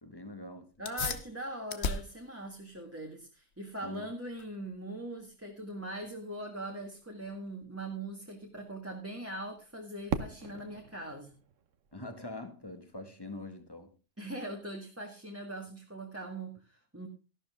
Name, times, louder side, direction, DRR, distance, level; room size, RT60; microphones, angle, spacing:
voice 1, 0.0-0.7 3.8-4.1 11.9-13.9, left 2 dB, 20° left, 1.8 m, -44 dB
sound 1, 0.7-10.8, left 5 dB, 60° left, 1.4 m, -43 dB
voice 2, 0.8-11.3 14.2-17.1, right 1 dB, 10° right, 1.7 m, -41 dB
Fireworks, 10.1-13.0, right 6 dB, 75° right, 1.3 m, -39 dB
13.5 x 12.0 x 3.6 m
omnidirectional pair, 1.3 m